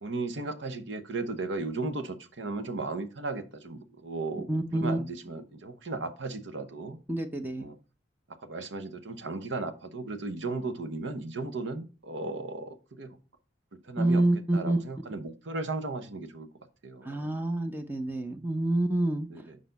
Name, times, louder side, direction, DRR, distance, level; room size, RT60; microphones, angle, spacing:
voice 1, 0.0-7.0 7.6-7.8 8.4-13.2 13.8-14.2 14.5-16.5 16.8-17.3 19.3-19.6, right 3 dB, 90° right, 0.9 m, -36 dB
voice 2, 4.5-5.0 7.1-7.7 14.0-14.8 17.0-19.3, right 1 dB, 10° right, 0.6 m, -27 dB
6.7 x 5.0 x 4.0 m
head